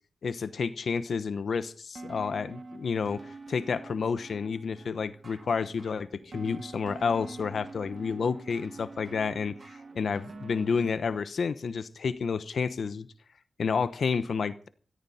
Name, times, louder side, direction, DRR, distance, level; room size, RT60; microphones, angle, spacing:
voice 1, 0.2-9.6 9.9-13.1 13.6-14.7, left 5 dB, 85° left, 0.9 m, -30 dB
sound 1, 1.9-10.9, right 3 dB, 55° right, 1.6 m, -46 dB
17.0 x 14.5 x 4.3 m
cardioid pair, 65°, 0 cm